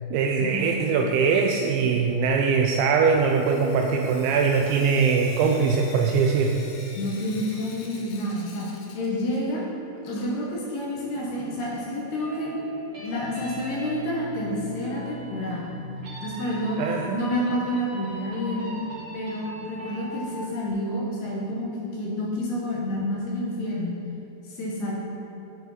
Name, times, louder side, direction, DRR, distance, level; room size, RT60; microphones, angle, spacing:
voice 1, 0.1-6.5 16.8-17.2, right 5 dB, 85° right, 2 dB, 2.6 m, -22 dB
Sink (filling or washing) / Drip, 2.9-9.7 9.9-11.9 13.1-13.2 13.5-13.6 13.8-13.9 16.8-16.9 17.4-17.5 18.0-18.1 18.7-18.8 19.5-19.6 20.4-20.5, left 4 dB, 90° left, 3.8 m, -48 dB
voice 2, 7.0-9.6 10.0-12.5 13.0-15.7 16.2-16.8 17.1-18.7 19.1-21.7 21.9-24.0 24.5-24.9, left 1 dB, 70° left, -4 dB, 2.7 m, -29 dB
sound 1, 12.1-20.7, equal, 55° right, 1.0 m, -39 dB
10.5 x 8.4 x 4.0 m, 2.9 s
omnidirectional pair, 5.7 m